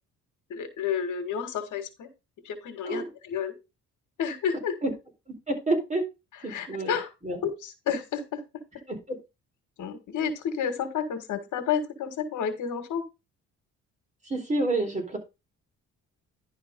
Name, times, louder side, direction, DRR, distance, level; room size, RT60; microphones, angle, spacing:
voice 1, 0.5-2.1 2.4-3.5 4.2-4.7 6.5-7.1 7.4-8.4 9.8-13.0, left 7 dB, 80° left, 8 dB, 2.0 m, -30 dB
voice 2, 5.3-6.1 6.4-6.9 7.2-7.4 8.9-9.2 14.2-15.2, right 2 dB, 25° right, 3 dB, 4.1 m, -28 dB
11.0 x 4.0 x 5.3 m, 0.26 s
cardioid pair, 90°, 30 cm